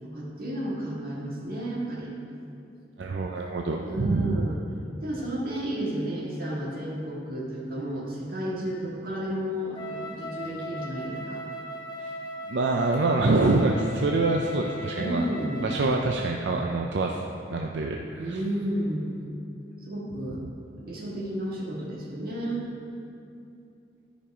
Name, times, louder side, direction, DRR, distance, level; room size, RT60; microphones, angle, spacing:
voice 1, 0.0-2.1 3.8-4.6 5.0-11.4 14.9-15.7 18.2-19.1 19.8-20.4 20.8-22.7, right 1 dB, 50° right, -5 dB, 2.0 m, -32 dB
voice 2, 3.0-4.5 12.0-12.1 12.4-15.3 15.6-17.2 17.5-18.4, right 2 dB, 80° right, 1 dB, 0.5 m, -25 dB
Wind instrument woodwind instrument, 9.7-16.2, left 1 dB, 25° left, 0.7 m, -38 dB
13.0 x 5.2 x 4.9 m, 2.6 s
head